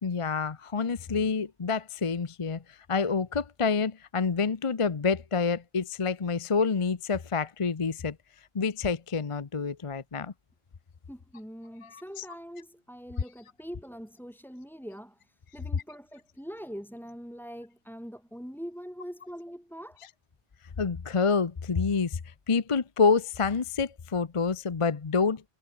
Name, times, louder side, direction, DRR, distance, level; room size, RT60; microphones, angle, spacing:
voice 1, 0.0-8.2 8.5-10.3 11.8-12.2 20.8-22.2 22.5-25.5, left 5 dB, 35° left, 0.8 m, -28 dB
voice 2, 11.1-20.1, equal, ahead, 7.4 m, -43 dB
omnidirectional pair, 1.1 m